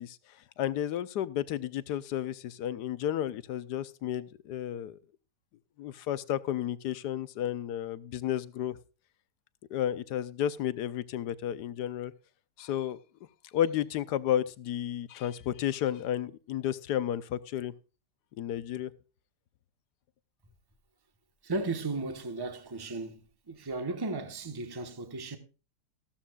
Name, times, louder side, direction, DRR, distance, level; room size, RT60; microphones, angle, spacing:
voice 1, 0.0-5.0 5.8-8.8 9.7-12.1 12.6-13.0 13.4-17.7 18.4-18.9, left 11 dB, 75° left, 1.3 m, -32 dB
voice 2, 21.4-23.2 23.5-25.4, right 3 dB, 15° right, 1.1 m, -35 dB
15.0 x 13.0 x 2.4 m
omnidirectional pair, 1.8 m